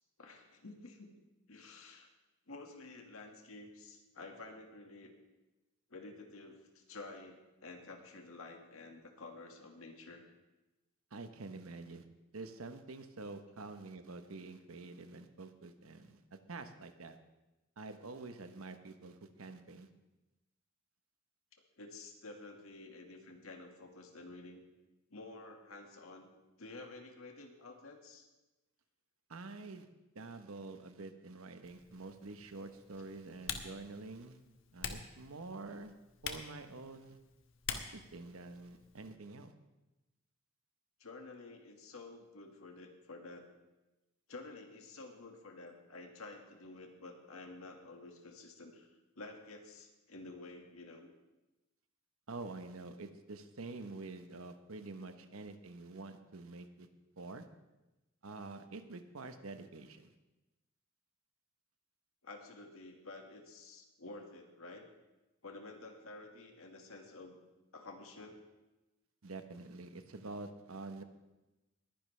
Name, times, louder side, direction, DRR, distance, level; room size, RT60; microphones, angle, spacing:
voice 1, 0.2-1.1 1.5-2.1 2.5-5.1 5.9-10.2 21.8-24.6 25.1-26.3 26.6-28.3 41.0-43.5 44.3-48.9 49.2-51.1 55.0-55.1 62.2-64.8 65.4-67.4 67.7-68.4, left 2 dB, 85° left, 3 dB, 1.8 m, -51 dB
voice 2, 11.1-12.0 12.3-17.2 17.8-19.9 29.3-29.9 30.1-34.4 34.7-35.9 36.2-37.2 37.7-39.5 52.3-56.9 57.2-57.5 58.2-60.1 69.2-71.0, right 3 dB, 85° right, 9 dB, 1.0 m, -47 dB
Typing, 31.6-39.1, left 7 dB, 65° left, 1.1 m, -47 dB
20.5 x 10.5 x 3.3 m, 1.0 s
head